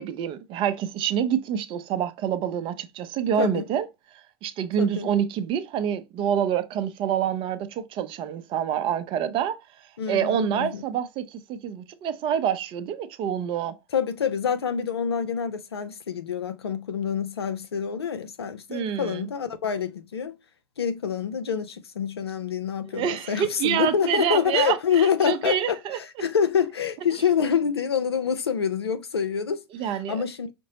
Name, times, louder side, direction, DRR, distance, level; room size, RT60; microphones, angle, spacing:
voice 1, 0.0-3.9 4.4-9.6 10.1-13.8 18.7-19.3 22.9-26.0 29.7-30.2, right 9 dB, 40° right, 0.6 m, -27 dB
voice 2, 4.8-5.1 10.0-10.8 13.9-20.3 20.8-29.6 30.1-30.5, left 7 dB, 90° left, 0.6 m, -26 dB
5.1 x 2.0 x 2.7 m
hypercardioid pair, 95°, 13 cm